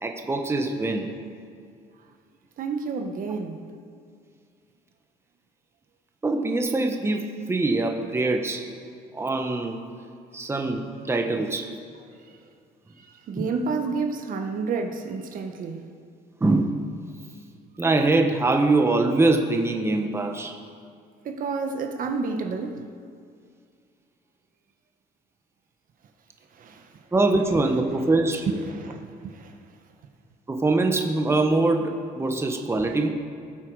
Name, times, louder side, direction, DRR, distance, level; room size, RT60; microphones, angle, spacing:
voice 1, 0.0-1.1 6.2-8.7 9.1-9.8 10.3-11.7 13.4-13.5 16.4-16.8 17.8-20.6 27.1-28.5 30.5-33.1, right 2 dB, 15° right, 4 dB, 1.2 m, -23 dB
voice 2, 2.6-3.6 12.3-12.4 13.0-15.9 21.2-22.8 26.5-27.0 28.5-29.6, right 4 dB, 55° right, 5 dB, 1.2 m, -30 dB
18.5 x 7.8 x 4.8 m, 2.2 s
cardioid pair, 110°, 17 cm